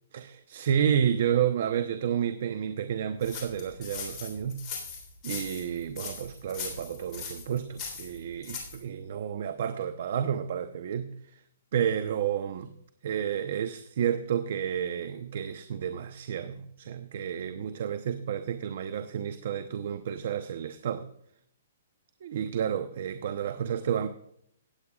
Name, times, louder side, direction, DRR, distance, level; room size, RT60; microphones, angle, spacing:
voice 1, 0.1-4.6 5.2-11.1 11.7-12.7 13.0-21.1 22.2-24.1, right 8 dB, 55° right, 10 dB, 0.8 m, -30 dB
sound 1, 3.2-8.8, left 5 dB, 25° left, 3.6 m, -40 dB
18.0 x 8.7 x 2.4 m, 0.69 s
hypercardioid pair, 155°, 0 cm